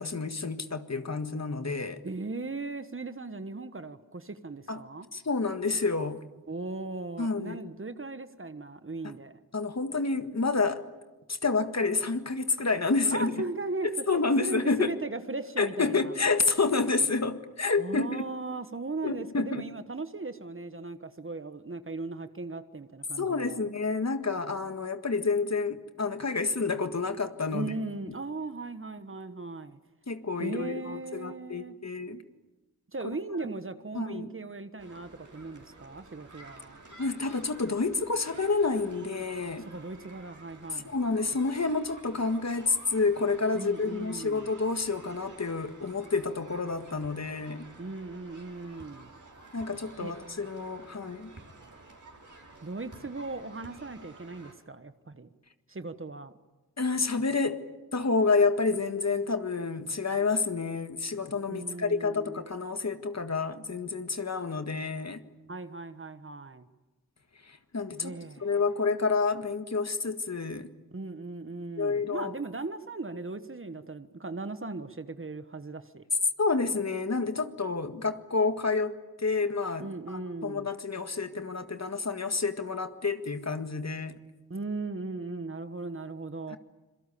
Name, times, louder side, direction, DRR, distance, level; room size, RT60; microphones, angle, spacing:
voice 1, 0.0-2.0 4.7-4.8 5.1-6.2 7.2-7.6 9.5-10.8 11.3-13.3 14.1-14.9 15.6-18.2 19.0-19.6 23.2-27.7 30.1-32.2 33.9-34.3 37.0-39.7 40.7-47.7 49.5-51.3 56.8-57.6 57.9-65.2 67.4-70.7 71.8-72.3 76.4-84.1 86.5-86.6, left 4 dB, 45° left, 8 dB, 1.8 m, -29 dB
voice 2, 2.0-5.1 6.5-9.4 13.1-14.0 14.4-16.1 17.8-23.6 27.5-29.8 30.4-31.8 32.9-36.8 39.7-41.0 43.5-44.5 47.8-49.1 50.0-50.1 52.6-55.3 55.7-56.3 61.5-62.4 65.5-66.7 67.9-68.5 70.9-76.0 79.8-80.7 84.5-86.6, right 3 dB, 35° right, 11 dB, 1.3 m, -38 dB
sound 1, 34.8-54.5, right 3 dB, 55° right, 5.1 m, -51 dB
26.5 x 23.0 x 8.5 m, 1.1 s
wide cardioid pair, 65°, 36 cm